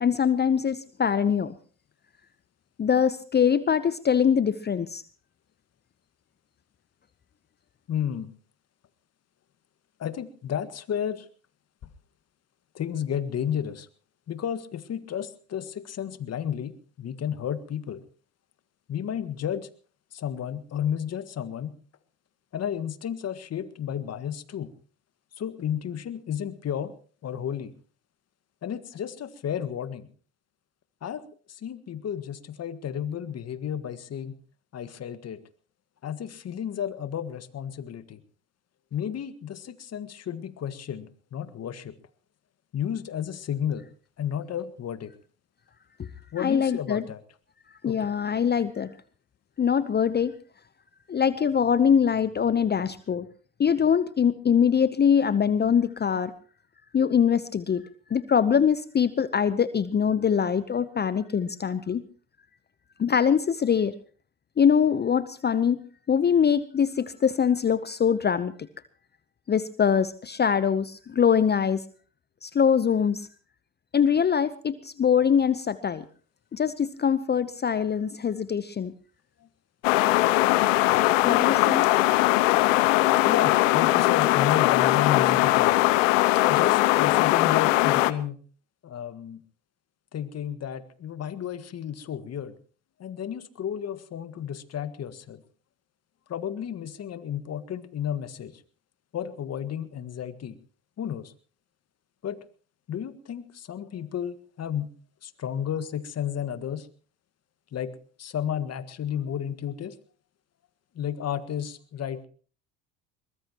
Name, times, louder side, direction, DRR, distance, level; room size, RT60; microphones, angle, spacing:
voice 1, 0.0-1.5 2.8-5.0 46.0-46.1 46.4-47.0 47.8-48.9 49.6-50.3 51.1-53.3 53.6-56.3 56.9-62.0 63.0-63.9 64.6-65.8 66.1-68.7 69.5-71.8 72.4-73.3 73.9-76.0 76.5-78.9 81.2-81.9, left 7 dB, 25° left, 15 dB, 0.9 m, -23 dB
voice 2, 7.9-8.3 10.0-11.3 12.7-13.9 14.3-18.0 18.9-19.7 20.1-21.8 22.5-24.7 25.4-26.9 27.2-27.7 28.6-30.1 31.0-31.2 31.5-34.3 34.7-35.4 36.0-38.2 38.9-41.9 42.7-43.9 44.2-45.1 46.3-47.2 47.8-48.1 83.2-85.8 86.5-88.4 88.8-89.4 90.1-92.6 93.0-95.4 96.3-98.6 99.1-100.6 101.0-101.3 102.2-102.4 102.9-104.9 105.2-106.9 107.7-110.0 111.0-112.3, left 9 dB, 40° left, 14 dB, 1.7 m, -32 dB
sound 1, 79.8-88.1, left 18 dB, 75° left, 1.0 m, -20 dB
22.5 x 20.5 x 3.0 m, 0.40 s
hypercardioid pair, 70°, 38 cm